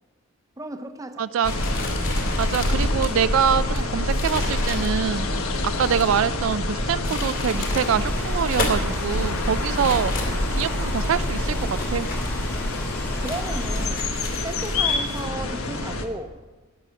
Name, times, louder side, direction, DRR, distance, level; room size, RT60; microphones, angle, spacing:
voice 1, 0.6-1.3 13.2-14.1 14.4-16.4, right 2 dB, 15° right, 8 dB, 0.7 m, -34 dB
voice 2, 1.2-1.5 2.4-10.1 10.5-12.1, right 7 dB, 65° right, 13 dB, 0.4 m, -25 dB
sound 1, 1.4-16.1, left 1 dB, 85° left, 1.3 m, -26 dB
sound 2, 1.4-6.2 6.8-8.0 8.3-9.1 9.7-10.9 11.5-12.8 13.3-15.2, left 2 dB, 40° left, 2.7 m, -33 dB
sound 3, 7.5-13.9, equal, 10° left, 1.1 m, -37 dB
15.0 x 9.7 x 6.4 m, 1.3 s
head